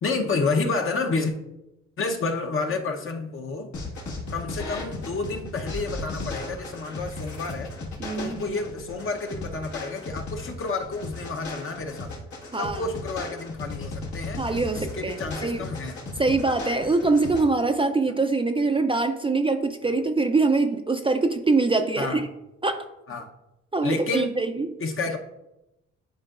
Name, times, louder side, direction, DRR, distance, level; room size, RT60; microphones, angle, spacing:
voice 1, 0.0-1.3 2.0-3.7 4.3-7.7 8.2-12.1 12.6-14.4 14.7-16.0 19.9-20.0 22.0-22.2 23.1-23.3 23.8-24.4 24.8-25.2, left 3 dB, 45° left, 4 dB, 0.9 m, -30 dB
sound 1, 3.7-17.4, left 2 dB, 70° left, 1.7 m, -36 dB
voice 2, 8.0-8.6 12.5-12.8 14.4-15.6 16.2-22.3 22.6-22.9 23.7-24.7, right 3 dB, 20° right, 5 dB, 0.4 m, -24 dB
10.5 x 4.4 x 2.5 m, 0.91 s
cardioid pair, 90°, 30 cm